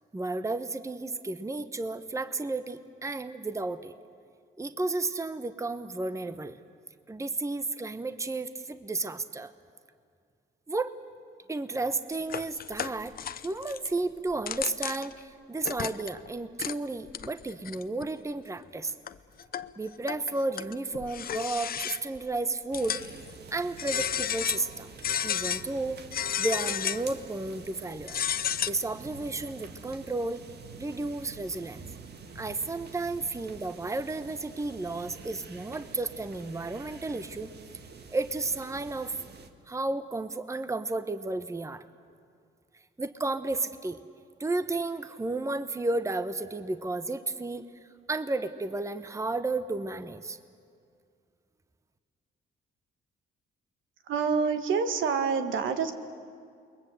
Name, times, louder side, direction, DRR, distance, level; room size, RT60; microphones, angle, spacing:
voice 1, 0.1-3.9 4.6-6.6 7.1-9.5 10.7-11.0 11.5-13.1 13.4-18.9 19.8-23.2 23.5-24.9 25.2-26.0 26.4-28.2 28.7-30.4 30.8-31.8 32.3-37.5 38.1-39.2 39.7-41.8 43.0-44.0 44.4-47.6 48.1-50.4, right 2 dB, 15° right, 12 dB, 1.0 m, -32 dB
sound 1, 12.1-13.9 14.3-15.2 15.6-16.3 16.6-16.8 17.1-18.1 18.6-18.7 19.1-19.7 20.1-22.2 22.7-23.3 23.8-24.7 25.0-25.6 26.1-27.1 28.0-28.7, left 9 dB, 50° left, 0.8 m, -32 dB
sound 2, 22.7-39.5, right 4 dB, 55° right, 1.9 m, -47 dB
voice 2, 54.1-55.9, right 5 dB, 75° right, 8 dB, 1.8 m, -27 dB
28.5 x 21.5 x 7.9 m, 2.3 s
cardioid pair, 90°, 20 cm